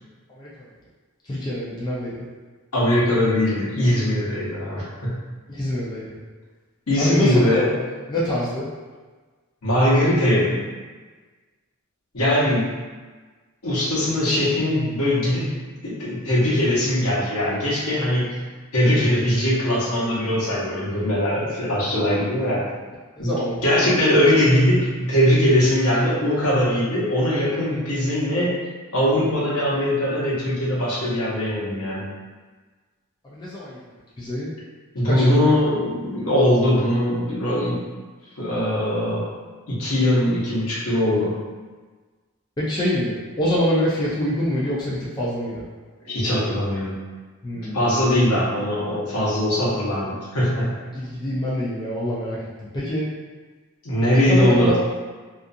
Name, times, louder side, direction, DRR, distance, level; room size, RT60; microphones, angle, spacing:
voice 1, 1.3-2.2 5.5-6.2 7.0-7.7 8.1-8.7 23.2-23.9 33.2-33.8 34.2-34.5 35.0-35.5 42.6-45.6 47.4-47.8 50.9-52.4 52.7-53.1 54.2-54.8, left 1 dB, 20° left, -8 dB, 0.4 m, -25 dB
voice 2, 2.7-5.2 6.9-7.7 9.6-10.6 12.1-12.7 13.6-15.5 15.8-18.4 18.7-22.7 23.2-23.3 23.6-28.5 28.9-32.1 34.9-37.8 38.4-39.3 39.7-41.3 46.0-47.0 47.7-50.7 53.8-54.8, left 1 dB, 70° left, -7 dB, 0.9 m, -21 dB
2.5 x 2.3 x 2.6 m, 1.4 s
head